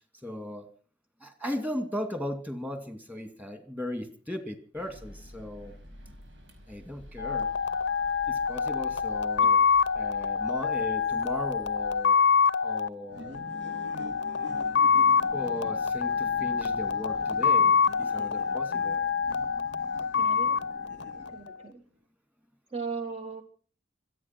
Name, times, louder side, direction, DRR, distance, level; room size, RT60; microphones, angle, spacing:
voice 1, 0.2-0.7 1.2-5.7 6.7-7.5 8.3-9.6 9.9-12.2 12.6-13.4 15.3-17.7 18.0-19.0, left 1 dB, 10° right, 7 dB, 2.5 m, -37 dB
sound 1, 4.7-12.0, equal, 85° right, 5.2 m, -50 dB
sound 2, 7.2-21.6, left 6 dB, 60° left, 0.7 m, -26 dB
sound 3, 13.1-21.6, equal, 65° right, 2.1 m, -46 dB
voice 2, 20.0-20.6 21.3-21.8 22.7-23.4, right 5 dB, 30° right, 5 dB, 1.2 m, -37 dB
25.5 x 9.0 x 6.1 m, 0.43 s
head